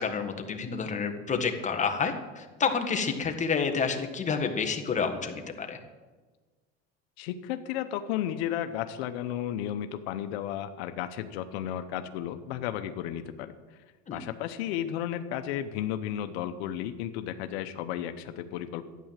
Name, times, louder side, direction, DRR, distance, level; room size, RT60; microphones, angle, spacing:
voice 1, 0.0-5.8 14.1-14.2, left 5 dB, 25° left, 5 dB, 1.6 m, -29 dB
voice 2, 7.2-13.5 14.1-18.8, left 11 dB, 90° left, 9 dB, 0.9 m, -33 dB
12.0 x 9.3 x 7.5 m, 1.3 s
supercardioid pair, 120°, 31 cm